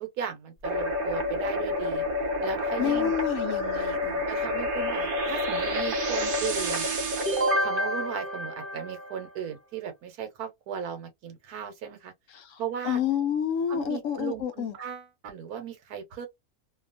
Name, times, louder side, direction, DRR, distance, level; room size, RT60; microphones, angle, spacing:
voice 1, 0.0-2.0 2.4-3.1 3.7-3.9 4.3-6.9 7.6-12.1 12.6-13.0 13.7-16.3, right 9 dB, 90° right, 1.3 m, -36 dB
sound 1, 0.6-9.3, left 1 dB, 45° right, 0.8 m, -28 dB
voice 2, 2.8-4.3 12.3-14.8, left 8 dB, 65° left, 0.9 m, -29 dB
2.8 x 2.3 x 2.5 m
omnidirectional pair, 1.6 m